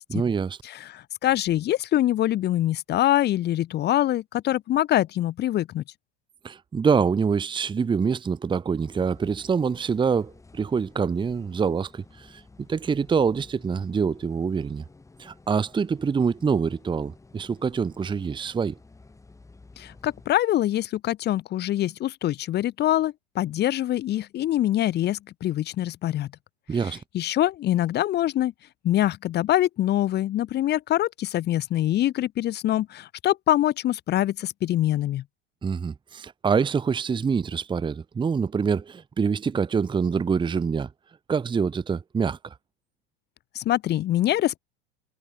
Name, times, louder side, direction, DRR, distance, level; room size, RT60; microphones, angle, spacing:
voice 1, 0.1-0.6 6.4-12.4 12.7-14.8 15.2-18.7 26.7-27.0 35.6-40.9 41.3-42.5, right 6 dB, 15° right, 1.3 m, -25 dB
voice 2, 0.6-5.8 19.8-26.3 27.1-28.5 28.8-35.2 43.5-44.6, left 13 dB, 35° left, 1.2 m, -24 dB
sound 1, 8.8-20.3, left 3 dB, 10° left, 4.4 m, -52 dB
supercardioid pair, 125°, 31 cm